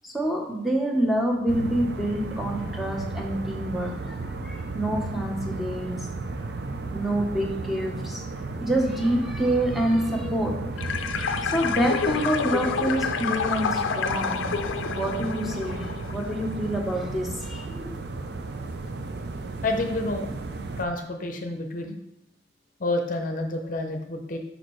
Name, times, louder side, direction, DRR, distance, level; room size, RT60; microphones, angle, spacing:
voice 1, 0.0-6.1 6.9-18.0, right 1 dB, ahead, 0 dB, 0.8 m, -27 dB
sound 1, 1.5-20.8, right 3 dB, 55° right, 0.4 m, -34 dB
sound 2, 10.8-16.5, left 6 dB, 85° left, 0.4 m, -29 dB
voice 2, 19.6-20.3 20.8-21.9 22.8-24.4, left 2 dB, 45° left, 4 dB, 0.6 m, -29 dB
6.4 x 5.1 x 3.1 m, 0.84 s
head